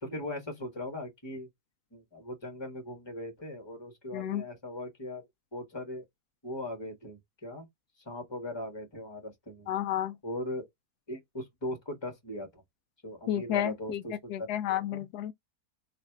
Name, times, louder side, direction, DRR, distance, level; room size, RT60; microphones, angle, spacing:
voice 1, 0.0-1.5 1.9-5.2 5.5-6.0 6.4-7.7 8.0-9.7 10.2-10.7 11.1-12.6 13.0-15.0, left 1 dB, 15° left, 1.5 m, -39 dB
voice 2, 4.1-4.4 9.7-10.1 13.3-14.0 14.3-15.3, left 11 dB, 85° left, 1.1 m, -31 dB
3.3 x 3.0 x 4.5 m
omnidirectional pair, 1.6 m